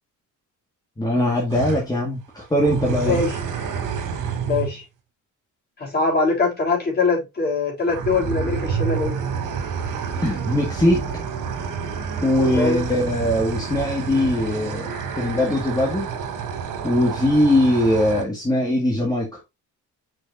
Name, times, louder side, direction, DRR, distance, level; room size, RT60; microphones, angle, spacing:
voice 1, 1.0-3.2 10.2-11.1 12.2-14.9 15.1-16.2 16.8-19.4, left 1 dB, 10° left, 1.9 m, -21 dB
sound 1, 1.5-1.8 2.6-4.8 7.8-18.2, right 6 dB, 75° right, 3.1 m, -29 dB
voice 2, 3.0-3.3 4.4-4.8 5.8-9.2 12.4-12.8, left 4 dB, 30° left, 4.1 m, -22 dB
6.6 x 6.5 x 2.7 m
cardioid pair, 150°, 32 cm